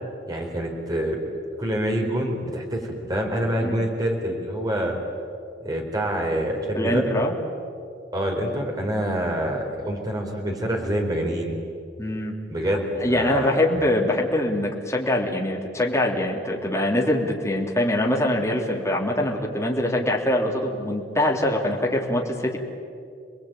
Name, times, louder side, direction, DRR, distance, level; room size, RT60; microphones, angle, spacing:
voice 1, 0.3-1.2 1.6-5.0 5.6-7.0 8.1-11.6 12.5-13.6, equal, 20° right, 1 dB, 4.4 m, -26 dB
voice 2, 6.7-7.3 12.0-12.4 13.0-22.6, left 1 dB, 15° left, -2 dB, 3.2 m, -23 dB
28.5 x 21.0 x 9.2 m, 2.4 s
head